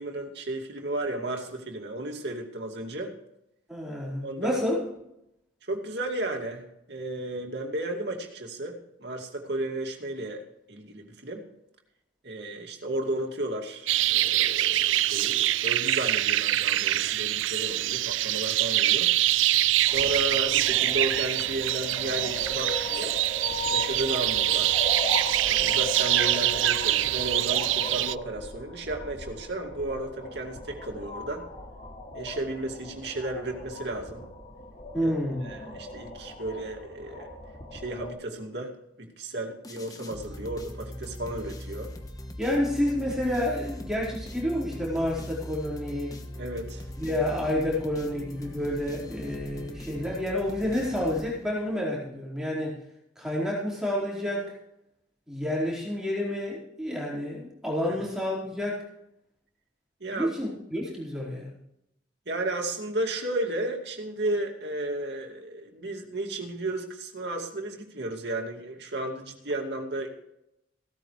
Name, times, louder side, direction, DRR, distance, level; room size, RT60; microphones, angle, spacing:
voice 1, 0.0-3.1 4.2-4.6 5.7-11.4 12.2-19.1 19.8-23.1 23.7-24.8 25.5-31.4 32.1-34.3 35.0-35.1 35.5-37.3 37.7-38.7 39.0-41.9 46.4-46.8 60.0-60.3 62.3-70.1, right 2 dB, 65° right, 2 dB, 2.4 m, -33 dB
voice 2, 3.7-4.8 34.9-35.5 42.4-46.2 47.0-52.8 53.2-54.5 55.3-58.8 60.1-61.5, left 1 dB, 5° right, -5 dB, 4.5 m, -29 dB
sound 1, 13.9-28.1, right 14 dB, 90° right, 0.4 m, -25 dB
sound 2, 19.9-38.1, left 2 dB, 40° left, 2.8 m, -38 dB
sound 3, 39.6-51.8, left 1 dB, 20° left, 1.2 m, -41 dB
16.0 x 13.5 x 3.3 m, 0.80 s
head